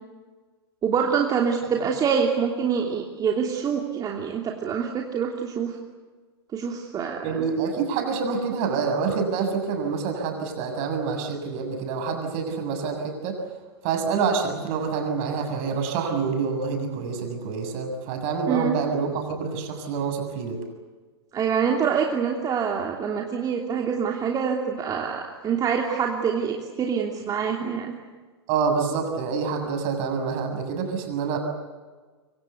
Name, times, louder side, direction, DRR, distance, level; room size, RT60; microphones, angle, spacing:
voice 1, 0.8-5.8 6.5-7.2 18.5-18.7 21.3-27.9, right 6 dB, 25° right, 1 dB, 3.0 m, -25 dB
voice 2, 7.2-13.4 13.8-20.6 28.5-31.4, right 5 dB, 50° right, 5 dB, 7.0 m, -27 dB
26.0 x 24.5 x 8.3 m, 1.4 s
hypercardioid pair, 105°, 14 cm